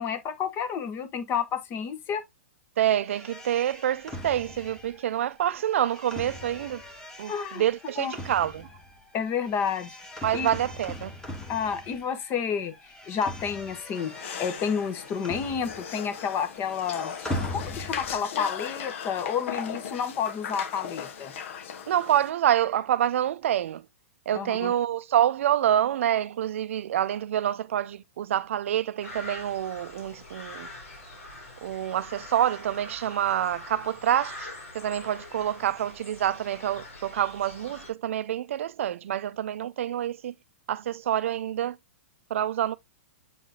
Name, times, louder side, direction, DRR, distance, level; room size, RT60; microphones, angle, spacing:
voice 1, 0.0-2.2 7.3-7.6 8.0-8.2 9.1-10.0 10.3-10.5 11.5-12.7 13.1-17.1 17.5-21.3 24.3-24.7, left 7 dB, 30° left, 1.1 m, -30 dB
voice 2, 2.8-6.8 7.2-8.7 10.2-11.1 21.9-23.8 24.3-30.7 31.6-34.5 34.7-40.3 40.7-41.8 42.3-42.7, right 11 dB, 65° right, 0.5 m, -27 dB
sound 1, 3.1-12.3 12.6-16.1 16.3-18.2, left 1 dB, 10° left, 1.5 m, -40 dB
sound 2, 13.9-22.3, left 7 dB, 60° left, 1.2 m, -38 dB
sound 3, 29.0-37.9, left 2 dB, 80° left, 4.1 m, -44 dB
7.8 x 4.8 x 2.8 m
hypercardioid pair, 120°, 7 cm